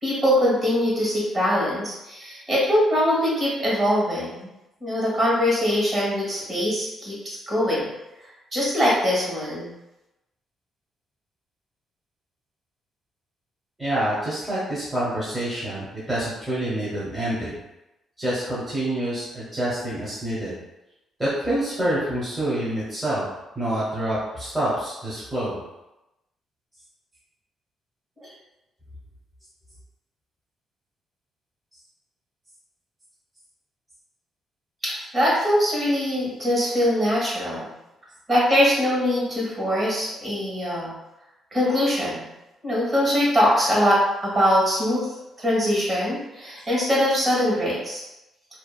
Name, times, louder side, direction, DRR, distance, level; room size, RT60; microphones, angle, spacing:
voice 1, 0.0-4.5 4.8-7.9 8.5-9.7 28.2-28.3 34.9-37.7 38.3-40.9 41.5-42.2 42.6-45.1 45.4-48.0, equal, 35° right, -6 dB, 1.4 m, -22 dB
voice 2, 13.8-17.6 18.2-20.5 21.2-23.3 23.6-25.6, right 1 dB, 10° right, -9 dB, 1.0 m, -27 dB
2.9 x 2.3 x 2.4 m, 0.95 s
cardioid pair, 90°, 0 cm